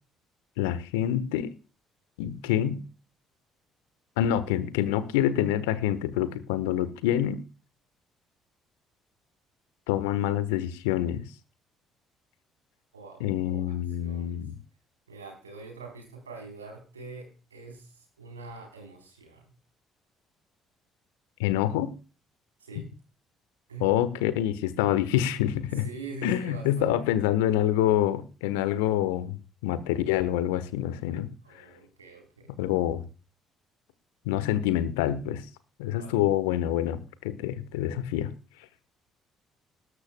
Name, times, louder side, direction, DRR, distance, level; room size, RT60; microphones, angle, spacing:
voice 1, 0.6-1.5 2.2-2.8 4.2-7.4 9.9-11.3 13.2-14.5 21.4-21.9 23.8-25.8 26.2-31.3 32.5-33.0 34.2-35.4 35.8-38.3, left 12 dB, 75° left, 15 dB, 1.2 m, -26 dB
voice 2, 12.9-13.6 14.0-14.4 15.1-19.5 22.6-22.9 23.7-24.0 25.7-27.1 31.4-32.5 35.9-36.2, right 4 dB, 85° right, 3 dB, 4.0 m, -44 dB
20.0 x 11.5 x 2.3 m, 0.33 s
figure-of-eight pair, 50°, 0 cm